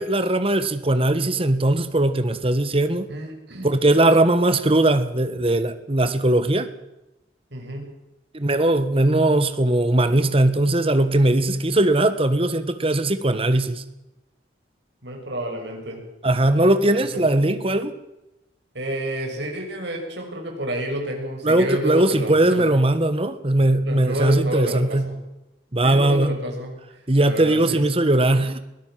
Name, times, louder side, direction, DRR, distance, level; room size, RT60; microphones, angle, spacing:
voice 1, 0.0-3.1 3.6-6.7 8.3-13.8 16.2-17.9 21.4-25.1 25.7-26.3 27.1-28.6, right 1 dB, 30° right, 11 dB, 1.5 m, -19 dB
voice 2, 3.1-3.8 7.5-7.9 15.0-16.0 17.0-17.2 18.7-22.7 23.8-25.2 25.8-26.8 27.2-27.8, right 1 dB, 70° right, 2 dB, 6.6 m, -30 dB
22.5 x 16.5 x 7.6 m, 0.94 s
head